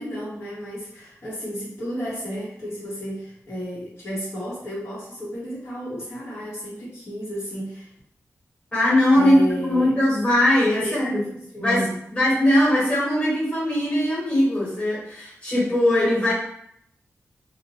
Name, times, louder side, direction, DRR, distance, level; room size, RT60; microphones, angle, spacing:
voice 1, 0.0-7.9 9.1-10.0 10.8-12.0, equal, 55° left, -9 dB, 0.9 m, -32 dB
voice 2, 8.7-11.2 11.6-11.8 12.1-16.3, left 1 dB, 20° left, -7 dB, 1.2 m, -20 dB
2.7 x 2.1 x 2.9 m, 0.73 s
wide cardioid pair, 145°, 5 cm